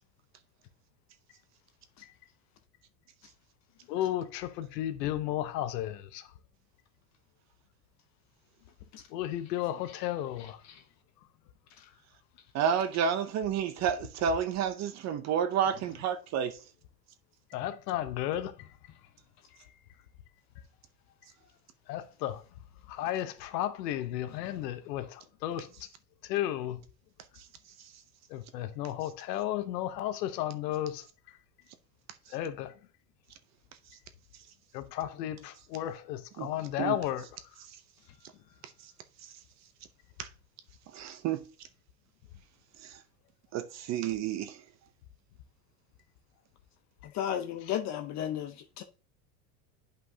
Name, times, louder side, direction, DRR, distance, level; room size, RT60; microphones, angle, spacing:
voice 1, 3.9-6.2 9.1-10.6 17.5-18.5 21.9-22.4 22.9-25.1 25.4-25.7 26.3-26.8 28.3-31.0 32.3-32.7 34.7-37.3 47.7-47.8, left 12 dB, 85° left, 1.0 m, -33 dB
voice 2, 12.5-16.6 36.4-36.5 36.8-37.0 40.2-40.3 40.9-41.4 42.8-43.0 43.5-44.6, right 8 dB, 35° right, 0.6 m, -30 dB
voice 3, 47.1-48.8, left 10 dB, 35° left, 0.6 m, -33 dB
9.6 x 5.4 x 2.7 m
supercardioid pair, 130°, 48 cm